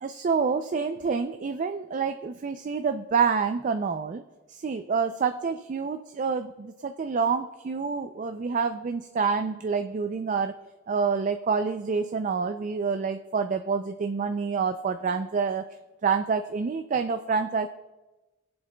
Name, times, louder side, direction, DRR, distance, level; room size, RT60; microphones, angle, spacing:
voice 1, 0.0-4.2 4.5-10.5 10.9-15.6 16.0-17.7, right 5 dB, 45° right, 8 dB, 0.4 m, -27 dB
22.0 x 7.9 x 2.2 m, 1.1 s
head